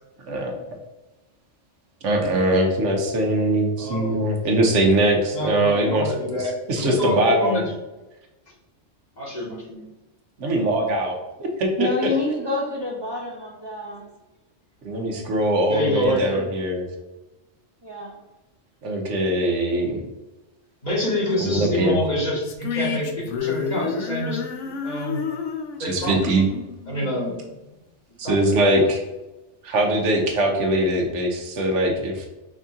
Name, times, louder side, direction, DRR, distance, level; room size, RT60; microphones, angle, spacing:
voice 1, 0.3-0.6 2.0-7.7 10.4-12.1 14.8-16.8 18.8-20.0 21.4-22.0 25.8-26.5 28.2-29.0 29.6-32.3, right 1 dB, 80° right, 2 dB, 1.2 m, -22 dB
voice 2, 3.8-4.3 5.3-7.6 9.2-9.8 15.7-16.4 20.8-24.4 24.8-25.2 25.8-26.1 26.9-27.4 28.2-28.6, left 1 dB, 35° left, -5 dB, 1.4 m, -26 dB
voice 3, 11.8-14.1 17.8-18.2, left 2 dB, 25° right, -4 dB, 0.7 m, -27 dB
sound 1, 22.4-27.8, left 6 dB, 80° left, 1.0 m, -30 dB
5.3 x 2.7 x 3.6 m, 1.0 s
omnidirectional pair, 1.2 m